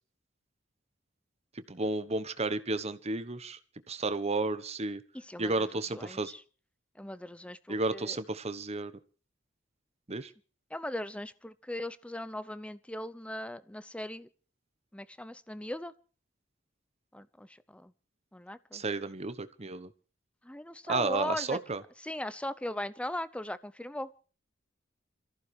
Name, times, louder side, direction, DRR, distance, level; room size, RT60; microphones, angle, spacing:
voice 1, 1.7-3.6 3.9-5.0 5.4-6.3 7.7-8.9 10.1-10.3 18.7-19.9 20.9-21.8, right 3 dB, 35° right, 1.1 m, -32 dB
voice 2, 5.1-6.4 7.0-8.2 10.7-14.3 14.9-15.9 17.1-17.9 18.3-18.8 20.4-21.6 22.0-24.1, left 1 dB, 5° left, 0.7 m, -39 dB
27.0 x 14.5 x 3.3 m
head